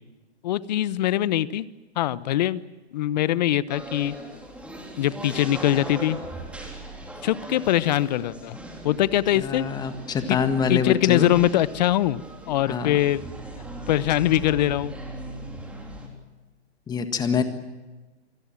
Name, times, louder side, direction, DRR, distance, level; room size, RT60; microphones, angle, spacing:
voice 1, 0.4-1.6 2.0-2.6 2.9-4.1 5.0-6.2 7.2-8.6 8.8-9.7 10.3-10.4 10.7-13.2 13.9-14.9, left 13 dB, 40° left, 18 dB, 0.9 m, -22 dB
sound 1, 3.7-16.1, right 1 dB, 5° right, 3.5 m, -39 dB
voice 2, 9.3-11.3 12.6-13.0 16.9-17.4, left 6 dB, 10° left, 8 dB, 1.7 m, -25 dB
27.5 x 21.0 x 7.5 m, 1.2 s
hypercardioid pair, 140°, 34 cm